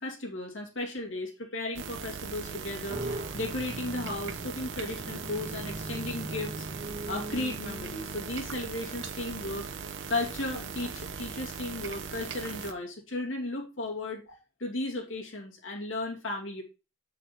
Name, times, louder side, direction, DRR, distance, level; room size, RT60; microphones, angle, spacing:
voice 1, 0.0-9.7 10.1-16.6, left 2 dB, 75° left, 0 dB, 2.7 m, -35 dB
sound 1, 1.7-12.7, right 6 dB, 70° right, 0.7 m, -39 dB
sound 2, 2.9-10.6, right 1 dB, 35° right, 2.1 m, -41 dB
6.8 x 5.7 x 4.4 m, 0.30 s
head